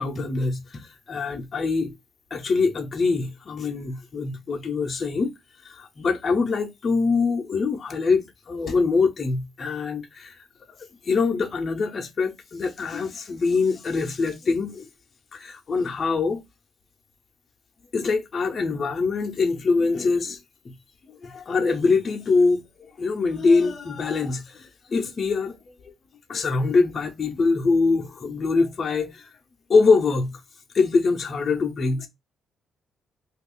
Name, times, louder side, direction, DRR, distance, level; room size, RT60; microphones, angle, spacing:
voice 1, 0.0-2.0 2.3-5.3 5.6-10.4 10.7-14.9 15.3-16.4 17.9-20.4 20.6-20.7 21.0-25.6 25.8-25.9 26.3-29.3 29.7-30.4 30.7-32.1, left 4 dB, 30° left, 0.6 m, -24 dB
2.8 x 2.4 x 3.7 m
cardioid pair, 155°, 0 cm